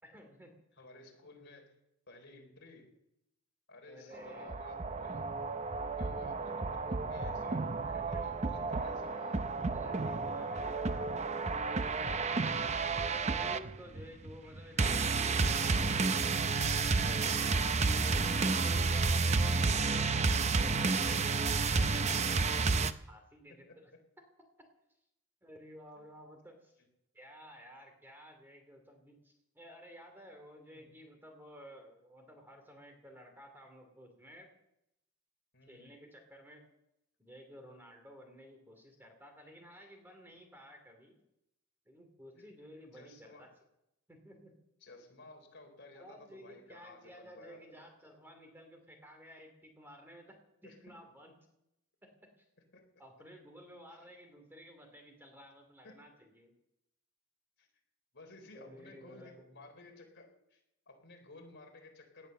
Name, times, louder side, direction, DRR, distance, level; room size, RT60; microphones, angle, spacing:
voice 1, 0.0-0.6 3.9-4.5 7.8-8.7 9.7-11.1 13.0-16.6 16.9-17.7 18.4-22.3 23.0-23.9 25.4-26.7 27.1-34.5 35.7-36.7 37.2-41.2 41.9-43.5 44.1-44.6 45.9-50.4 50.6-51.3 52.0-52.1 52.4-52.5 53.0-56.5 58.5-59.7, equal, 10° right, 4 dB, 2.7 m, -54 dB
voice 2, 0.8-1.8 2.1-2.9 3.7-5.5 6.0-7.7 8.1-9.5 10.3-11.1 23.7-23.8 26.0-26.1 30.8-30.9 35.5-35.9 42.3-42.5 42.9-43.5 44.8-47.8 50.6-50.8 52.7-52.8 55.8-56.1 57.6-57.7 58.1-60.6 60.9-62.3, left 2 dB, 50° left, 3 dB, 4.0 m, -55 dB
sound 1, 4.1-22.9, right 4 dB, 30° right, 0.6 m, -31 dB
18.5 x 11.0 x 6.7 m, 0.82 s
head